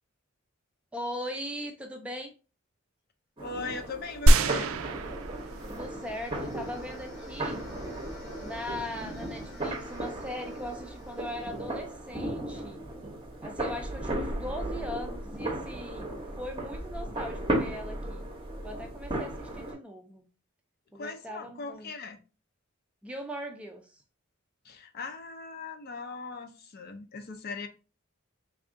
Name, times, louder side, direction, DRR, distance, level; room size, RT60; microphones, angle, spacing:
voice 1, 0.9-2.3 5.7-7.6 8.4-12.8 13.4-16.1 16.4-18.2 18.6-20.3 20.9-21.9 23.0-24.0, left 1 dB, 5° right, 0.4 m, -39 dB
voice 2, 3.4-4.7 20.9-22.2 24.6-27.7, left 4 dB, 45° left, 0.5 m, -39 dB
sound 1, 3.4-19.7, right 1 dB, 25° right, 0.7 m, -36 dB
sound 2, 4.3-6.0 6.5-6.6, right 1 dB, 75° right, 0.4 m, -23 dB
sound 3, 4.5-12.4, left 1 dB, 85° left, 1.7 m, -50 dB
3.5 x 2.4 x 3.5 m
head